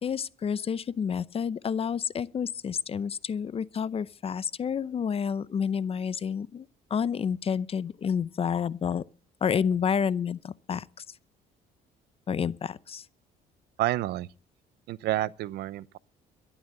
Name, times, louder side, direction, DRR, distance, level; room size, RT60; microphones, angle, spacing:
voice 1, 0.0-6.7 6.9-9.0 9.4-10.8 12.3-13.0, left 7 dB, 35° left, 0.7 m, -29 dB
voice 2, 13.8-14.3 14.9-16.0, right 15 dB, 75° right, 0.7 m, -29 dB
13.0 x 11.0 x 7.7 m
cardioid pair, 110°, 17 cm